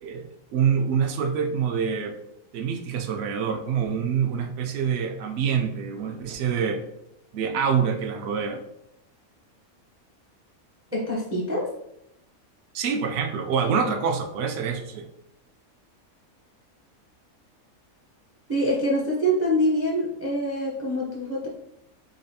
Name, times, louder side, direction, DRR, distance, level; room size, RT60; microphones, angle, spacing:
voice 1, 0.0-2.2 2.5-6.8 7.3-8.6 12.7-15.1, right 6 dB, 65° right, 5 dB, 0.7 m, -26 dB
voice 2, 10.9-11.7 18.5-21.5, equal, 20° right, -3 dB, 0.4 m, -25 dB
4.0 x 3.1 x 2.7 m, 0.82 s
omnidirectional pair, 1.5 m